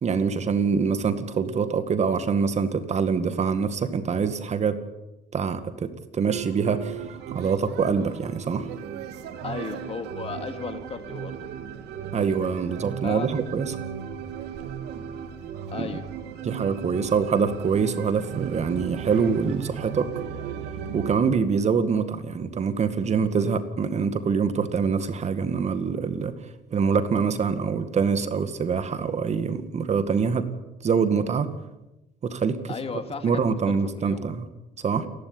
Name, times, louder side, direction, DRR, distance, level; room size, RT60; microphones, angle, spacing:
voice 1, 0.0-4.8 5.3-7.0 7.3-8.7 12.1-13.8 15.8-15.9 16.4-20.1 20.9-26.3 26.7-30.5 30.8-31.5 32.2-32.8 33.2-34.5 34.8-35.1, right 6 dB, 40° right, 10 dB, 2.2 m, -25 dB
sound 1, 6.3-21.2, right 8 dB, 80° right, 2.7 m, -36 dB
voice 2, 9.4-11.5 13.0-13.3 15.7-16.0 32.7-34.2, left 5 dB, 35° left, 8 dB, 2.5 m, -35 dB
29.0 x 12.0 x 9.8 m, 0.97 s
cardioid pair, 110°, 17 cm